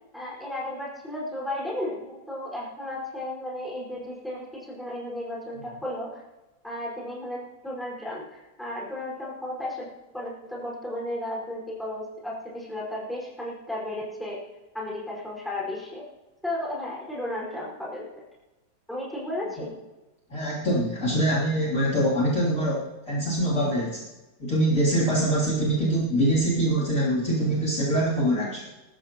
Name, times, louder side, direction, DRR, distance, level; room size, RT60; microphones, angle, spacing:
voice 1, 0.1-6.2 6.6-14.4 14.7-16.0 16.4-18.1 18.9-19.8, left 1 dB, ahead, -5 dB, 5.1 m, -34 dB
voice 2, 20.3-24.0 24.4-28.6, right 1 dB, 40° left, -8 dB, 3.7 m, -24 dB
23.0 x 13.5 x 3.0 m, 1.1 s
omnidirectional pair, 2.1 m